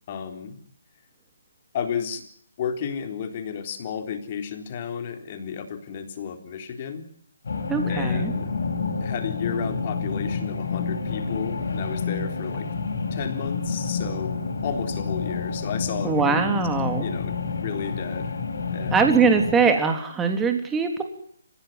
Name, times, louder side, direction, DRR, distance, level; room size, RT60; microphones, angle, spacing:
voice 1, 0.1-0.6 1.7-2.2 2.6-7.1 7.8-8.5 9.0-12.7 13.1-16.5 17.0-18.4 18.7-19.1, left 7 dB, 40° left, 6 dB, 3.8 m, -32 dB
sound 1, 7.4-19.5, left 4 dB, 65° left, 5.8 m, -29 dB
voice 2, 7.7-8.3 16.0-17.1 18.9-21.0, right 5 dB, 10° right, 4 dB, 3.3 m, -22 dB
29.5 x 16.5 x 9.4 m, 0.65 s
figure-of-eight pair, 140°, 0 cm